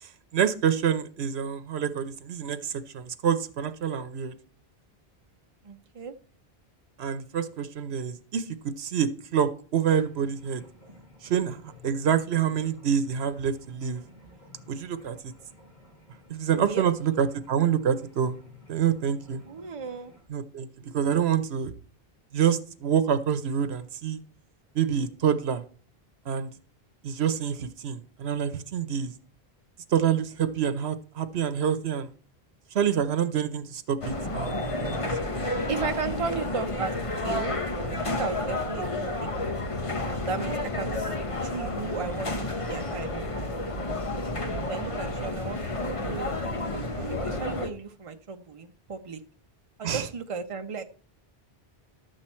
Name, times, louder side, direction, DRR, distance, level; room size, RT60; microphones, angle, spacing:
voice 1, 0.0-4.3 7.0-10.6 11.2-14.0 14.7-15.3 16.3-18.4 18.7-19.4 20.3-21.7 22.3-24.2 24.7-25.6 26.3-26.5 27.0-29.1 29.9-32.1 32.7-35.0 35.3-35.5 49.8-50.1, right 8 dB, 85° right, 11 dB, 1.1 m, -27 dB
voice 2, 5.6-6.2 16.6-16.8 19.4-20.1 35.7-37.6 37.9-39.3 40.3-41.1 41.4-43.1 44.7-45.6 46.0-49.2 49.8-50.8, right 5 dB, 35° right, 6 dB, 0.8 m, -35 dB
sound 1, 9.8-20.2, left 2 dB, 80° left, 4.2 m, -54 dB
sound 2, 34.0-47.7, left 2 dB, 35° left, 1.1 m, -31 dB
12.0 x 7.8 x 4.4 m, 0.43 s
omnidirectional pair, 1.0 m